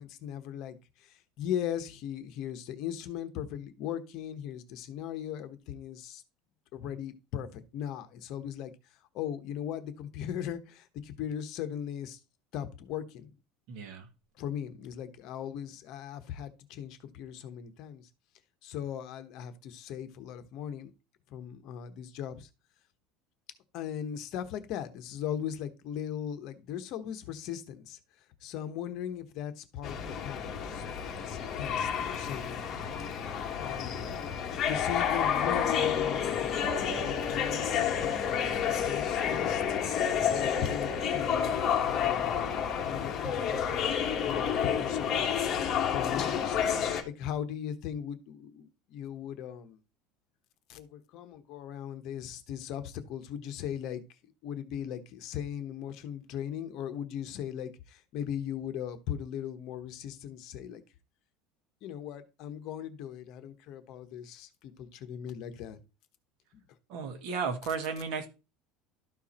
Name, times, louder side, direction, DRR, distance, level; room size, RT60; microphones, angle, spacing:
voice 1, 0.0-6.2 6.7-8.7 9.1-12.2 12.5-13.3 14.4-18.1 18.6-20.9 21.3-22.5 23.7-28.0 28.4-30.0 30.2-30.8 31.1-32.6 33.6-34.1 34.7-39.8 40.2-46.6 47.0-49.8 50.7-54.0 54.4-60.8 61.8-65.8 66.5-66.6, left 9 dB, 45° left, 1.1 m, -38 dB
voice 2, 13.7-14.1 66.9-68.3, right 5 dB, 55° right, 1.9 m, -34 dB
sound 1, 29.8-47.0, left 8 dB, 30° left, 1.5 m, -30 dB
12.5 x 4.7 x 4.3 m
cardioid pair, 160°, 0 cm